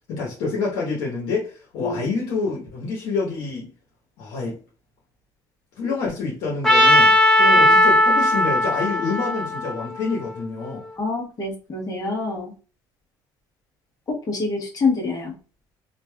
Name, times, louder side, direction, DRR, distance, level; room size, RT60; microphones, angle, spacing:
voice 1, 0.1-3.7 4.2-4.6 5.8-7.1 7.6-10.8, left 4 dB, 85° left, 1.0 m, -27 dB
Trumpet, 6.6-10.7, left 1 dB, 5° left, 1.3 m, -17 dB
voice 2, 7.4-7.7 11.0-12.5 14.1-15.3, left 3 dB, 40° left, 1.2 m, -26 dB
3.1 x 2.5 x 2.3 m
supercardioid pair, 85°, 9 cm